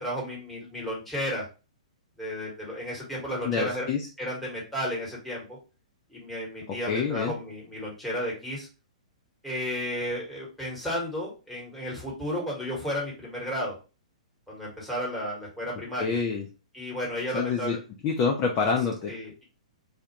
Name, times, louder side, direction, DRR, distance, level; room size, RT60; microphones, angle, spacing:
voice 1, 0.0-1.5 2.2-3.9 4.2-5.6 6.1-8.7 9.4-13.7 14.5-16.2 16.7-17.8 19.1-19.4, equal, ahead, -4 dB, 1.1 m, -33 dB
voice 2, 3.4-4.1 6.7-7.3 16.0-16.5 17.3-17.8 18.0-19.1, left 5 dB, 30° left, 1 dB, 0.4 m, -27 dB
2.3 x 2.1 x 2.8 m, 0.32 s
figure-of-eight pair, 115°, 4 cm